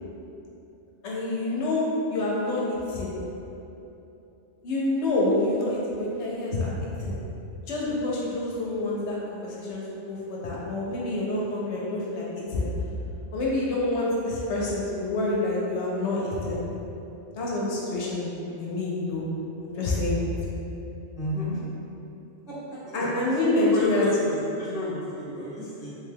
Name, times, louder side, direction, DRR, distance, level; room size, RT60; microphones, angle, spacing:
voice 1, 1.0-3.1 4.6-7.1 7.7-12.7 13.3-16.6 17.4-19.2 19.6-20.3 22.9-24.1, left 2 dB, 70° left, -5 dB, 0.8 m, -27 dB
voice 2, 21.1-21.6 22.5-22.6 22.8-22.9 23.6-26.0, equal, 5° right, -10 dB, 0.4 m, -33 dB
3.3 x 2.2 x 3.3 m, 3.0 s
omnidirectional pair, 1.3 m